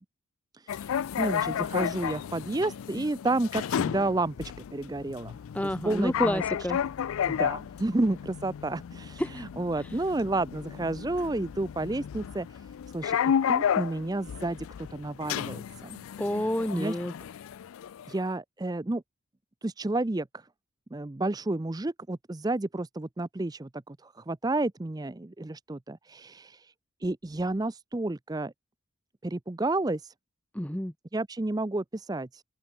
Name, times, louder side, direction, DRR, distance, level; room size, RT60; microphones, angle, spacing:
voice 1, 0.5-5.3 5.6-6.4 7.3-12.6 12.9-13.2 13.5-16.0 16.7-17.0 18.1-19.0 19.6-20.5 20.9-26.7 27.0-28.5 29.2-30.1 31.1-32.4, right 2 dB, 15° right, 0.5 m, -31 dB
sound 1, 0.7-18.2, left 8 dB, 75° left, 0.3 m, -32 dB
voice 2, 5.5-6.8 9.2-9.5 16.2-17.1 30.5-30.9, equal, 5° left, 0.9 m, -29 dB
head